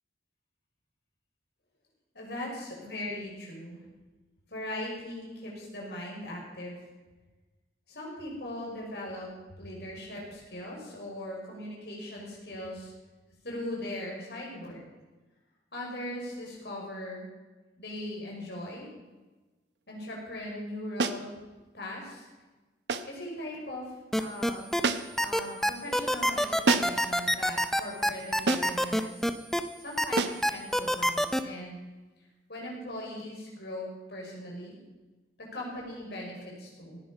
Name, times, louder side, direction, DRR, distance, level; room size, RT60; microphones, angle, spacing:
voice 1, 2.1-3.8 4.5-6.7 7.9-9.3 9.6-12.9 13.4-14.8 15.7-17.2 17.7-18.9 19.9-21.3 21.7-22.3 23.1-24.6 25.2-29.3 29.8-31.8 32.5-34.8 35.4-37.0, left 1 dB, 70° left, -3 dB, 5.6 m, -39 dB
sound 1, 21.0-21.3 22.9-23.2 24.8-25.3 26.7-27.1 28.5-28.8 30.2-30.5, right 3 dB, 75° right, 0.9 m, -28 dB
sound 2, 24.1-24.8 25.2-29.6 30.0-31.4, equal, ahead, 0.6 m, -25 dB
17.5 x 10.0 x 5.5 m, 1.2 s
head